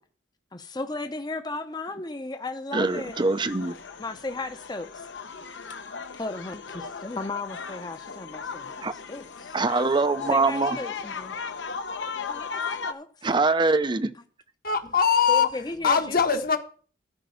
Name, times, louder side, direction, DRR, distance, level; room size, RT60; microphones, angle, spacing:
voice 1, 0.5-3.2 4.0-5.1 6.2-9.6 10.3-11.3 11.7-11.8 12.3-13.3 15.3-16.4, left 2 dB, 25° left, 0.7 m, -35 dB
voice 2, 2.7-3.8 8.8-8.9 9.5-10.8 13.2-14.1, right 3 dB, 25° right, 0.6 m, -23 dB
sound 1, 2.9-12.9, left 5 dB, 75° left, 1.1 m, -37 dB
voice 3, 14.6-15.5 15.8-16.6, left 6 dB, 55° left, 1.3 m, -21 dB
13.5 x 5.3 x 7.9 m
head